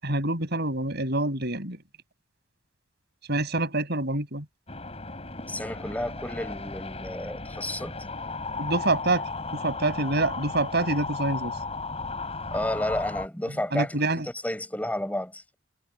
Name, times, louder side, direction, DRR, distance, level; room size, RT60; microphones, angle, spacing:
voice 1, 0.0-1.8 3.3-4.5 8.6-11.5 13.7-14.3, right 2 dB, 60° right, 8.0 m, -26 dB
sound 1, 4.7-13.3, left 3 dB, 35° left, 5.8 m, -35 dB
voice 2, 5.5-8.1 12.5-15.5, left 1 dB, 10° left, 7.0 m, -31 dB
head